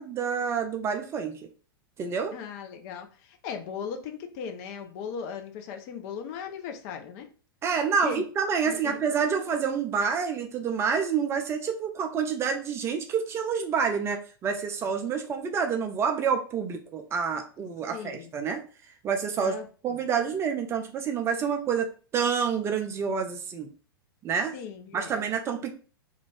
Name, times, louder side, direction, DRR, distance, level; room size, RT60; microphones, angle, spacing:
voice 1, 0.0-1.5 2.0-2.3 7.6-18.6 19.0-19.5 19.8-23.7 24.2-24.5 24.9-25.7, right 6 dB, 20° right, 4 dB, 0.3 m, -28 dB
voice 2, 2.3-7.3 8.0-8.2 8.7-9.0 17.9-18.3 19.4-20.0 24.5-25.1, left 7 dB, 40° left, 5 dB, 0.5 m, -38 dB
2.4 x 2.2 x 3.1 m, 0.38 s
figure-of-eight pair, 100°, 13 cm